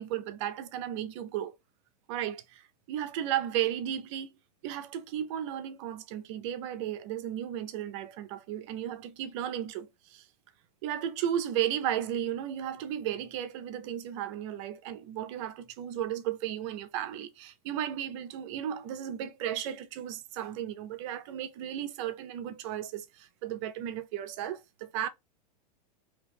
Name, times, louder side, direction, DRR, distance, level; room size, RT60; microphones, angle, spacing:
voice 1, 0.0-1.5 2.1-4.3 4.6-10.2 10.8-25.1, right 10 dB, 50° right, 0.7 m, -34 dB
3.0 x 2.9 x 3.5 m
supercardioid pair, 140°, 20 cm